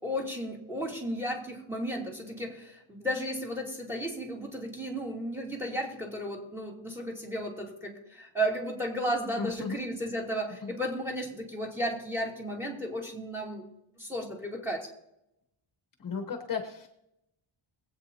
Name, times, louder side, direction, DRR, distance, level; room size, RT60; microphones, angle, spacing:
voice 1, 0.0-13.6 14.0-14.9, equal, 5° right, -1 dB, 2.8 m, -34 dB
voice 2, 9.4-9.8 10.6-10.7 16.0-16.9, left 5 dB, 40° left, 4 dB, 1.0 m, -34 dB
22.5 x 8.5 x 2.8 m, 0.85 s
wide cardioid pair, 130°, 49 cm